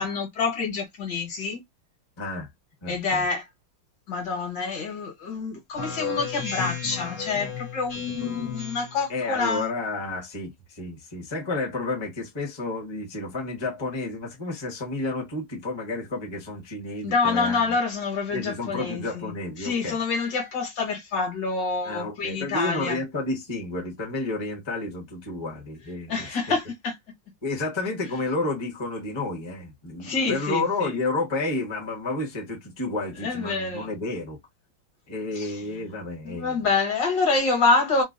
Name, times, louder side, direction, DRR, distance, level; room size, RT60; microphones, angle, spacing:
voice 1, 0.0-1.6 2.9-3.5 4.1-9.7 17.0-19.3 19.6-23.0 26.1-26.9 30.0-30.9 33.2-33.9 35.4-35.6 36.2-38.0, left 4 dB, 60° left, 1.9 m, -27 dB
voice 2, 2.2-2.5 2.8-3.2 9.1-17.8 18.3-20.0 21.8-26.4 27.4-34.4 35.1-36.6, left 2 dB, 20° left, 0.7 m, -31 dB
Speech synthesizer, 5.7-9.1, left 7 dB, 45° left, 1.3 m, -33 dB
3.8 x 2.2 x 2.5 m
omnidirectional pair, 2.3 m